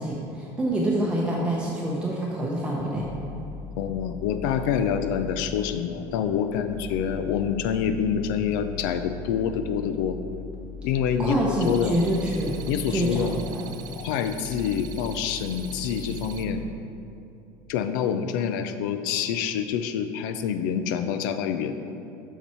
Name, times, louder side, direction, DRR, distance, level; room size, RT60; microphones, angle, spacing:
voice 1, 0.0-3.1 11.2-12.5 12.9-13.7, right 1 dB, 10° right, -4 dB, 0.7 m, -26 dB
sound 1, 3.0-16.7, left 4 dB, 40° left, 0.9 m, -39 dB
voice 2, 3.8-10.2 10.8-12.0 12.7-13.4 13.9-16.6 17.7-21.8, left 8 dB, 90° left, 9 dB, 0.5 m, -27 dB
sound 2, 11.6-16.4, right 9 dB, 40° right, 0.4 m, -45 dB
7.1 x 5.8 x 4.4 m, 2.6 s
cardioid pair, 145°, 10 cm